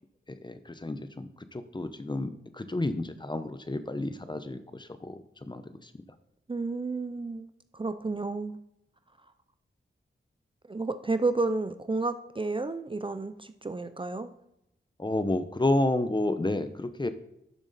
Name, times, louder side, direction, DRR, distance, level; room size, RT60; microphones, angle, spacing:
voice 1, 0.3-5.9 15.0-17.1, left 2 dB, 20° left, 10 dB, 0.9 m, -31 dB
voice 2, 6.5-8.6 10.7-14.3, right 3 dB, 25° right, 11 dB, 0.6 m, -31 dB
12.0 x 7.1 x 4.2 m, 0.79 s
wide cardioid pair, 80°, 20 cm